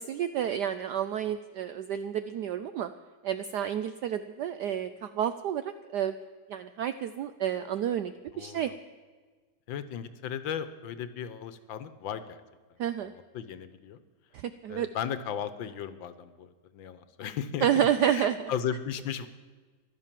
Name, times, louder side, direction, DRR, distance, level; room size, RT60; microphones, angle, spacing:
voice 1, 0.0-2.9 3.2-6.1 6.5-8.7 12.8-13.1 14.3-14.9 17.6-18.5, right 9 dB, 75° right, 11 dB, 0.9 m, -30 dB
voice 2, 8.3-8.7 9.7-12.4 13.0-14.0 14.7-17.7 18.0-19.3, left 8 dB, 70° left, 12 dB, 1.5 m, -36 dB
15.0 x 11.5 x 7.4 m, 1.4 s
omnidirectional pair, 2.3 m